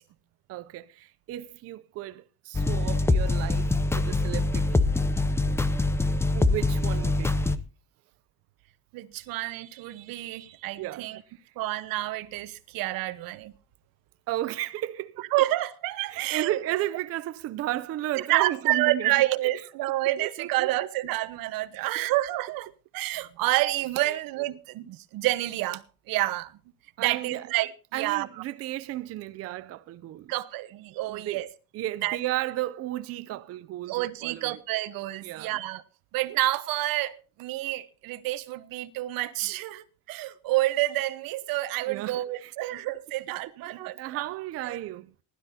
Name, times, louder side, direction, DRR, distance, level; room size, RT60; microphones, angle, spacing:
voice 1, 0.5-4.9 6.3-7.5 10.8-11.1 14.3-15.3 16.1-19.1 19.4-19.5 20.2-20.7 21.7-22.1 24.0-24.2 27.0-27.5 27.9-30.3 31.1-31.5 31.7-34.6 35.2-35.6 41.9-42.7 44.0-45.1, right 14 dB, 45° right, 0.5 m, -34 dB
Action Background Music, 2.5-7.6, left 2 dB, 10° left, 0.5 m, -24 dB
voice 2, 8.9-11.2 11.6-13.5 15.3-16.6 18.1-26.5 27.0-28.3 30.3-31.5 32.0-32.2 33.9-35.8 36.1-44.2 44.6-44.8, right 17 dB, 85° right, 1.2 m, -29 dB
20.0 x 12.0 x 2.8 m
cardioid pair, 180°, 34 cm